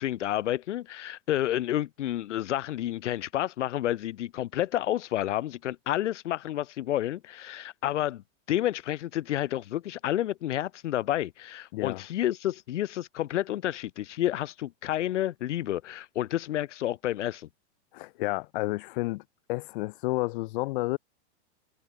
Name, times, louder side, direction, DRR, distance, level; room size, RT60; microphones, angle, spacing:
voice 1, 0.0-8.2 8.5-17.5, left 13 dB, 90° left, 1.5 m, -30 dB
voice 2, 11.7-12.0 17.9-19.2 19.5-21.0, left 21 dB, 50° left, 3.2 m, -30 dB
supercardioid pair, 165°, 35 cm